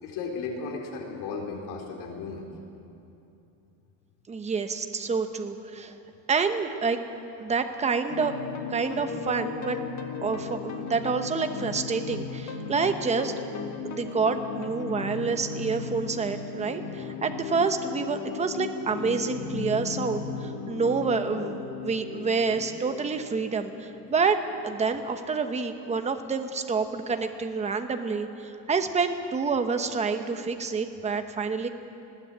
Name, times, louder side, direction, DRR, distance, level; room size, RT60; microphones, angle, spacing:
voice 1, 0.0-2.5 8.9-9.1, left 4 dB, 80° left, 0 dB, 3.9 m, -35 dB
voice 2, 4.3-5.9 6.3-7.0 7.4-8.4 8.7-9.8 10.2-13.3 13.8-31.7, right 4 dB, 15° right, 7 dB, 1.0 m, -28 dB
sound 1, 8.1-25.0, left 5 dB, 45° left, 1.7 m, -36 dB
20.0 x 15.5 x 9.0 m, 2.9 s
cardioid pair, 165°, 39 cm